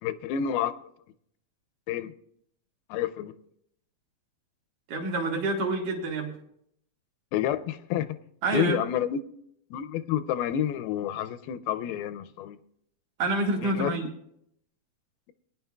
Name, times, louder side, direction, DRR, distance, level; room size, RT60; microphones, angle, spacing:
voice 1, 0.0-0.7 1.9-2.1 2.9-3.3 7.3-8.2 8.5-9.2 9.7-12.6 13.6-13.9, left 10 dB, 85° left, 12 dB, 2.4 m, -29 dB
voice 2, 4.9-6.3 8.4-8.8 13.2-14.1, right 2 dB, 65° right, 0 dB, 2.7 m, -27 dB
21.0 x 10.0 x 2.3 m, 0.73 s
omnidirectional pair, 4.3 m